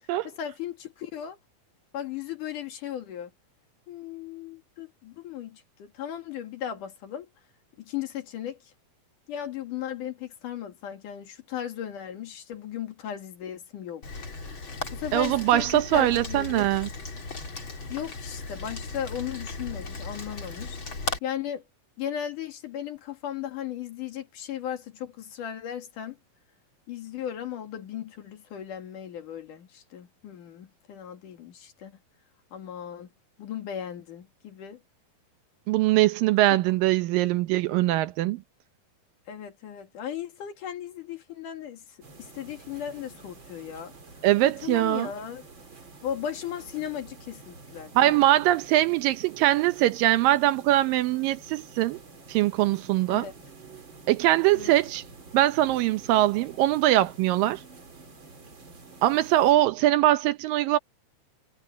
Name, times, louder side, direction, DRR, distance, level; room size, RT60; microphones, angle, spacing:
voice 1, 0.2-1.4 1.9-3.3 3.9-7.3 7.8-8.7 9.3-14.2 14.9-16.7 17.9-20.8 21.2-21.6 22.0-26.2 26.9-32.0 32.5-33.1 33.4-34.8 39.3-43.9 44.4-45.4 46.0-48.3 53.1-53.3 54.5-54.7, left 10 dB, 60° left, 3.4 m, -36 dB
Rain, 14.0-21.2, left 3 dB, 30° left, 4.4 m, -37 dB
voice 2, 15.1-16.9 35.7-38.4 44.2-45.1 48.0-52.0 52.3-53.3 54.1-55.0 55.3-57.6 59.0-60.8, right 15 dB, 75° right, 2.3 m, -22 dB
sound 1, 42.0-59.5, right 3 dB, 30° right, 3.9 m, -49 dB
omnidirectional pair, 4.4 m